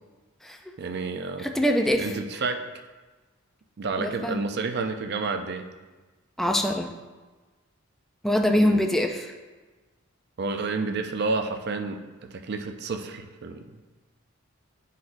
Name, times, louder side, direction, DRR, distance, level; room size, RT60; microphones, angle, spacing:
voice 1, 0.8-1.5 2.0-2.6 3.8-5.7 8.5-8.8 10.4-12.0 12.3-13.7, right 4 dB, 55° right, 6 dB, 0.5 m, -30 dB
voice 2, 1.4-2.1 4.0-4.4 6.4-6.9 8.2-9.3, equal, ahead, 3 dB, 0.3 m, -24 dB
10.5 x 4.1 x 2.6 m, 1.3 s
head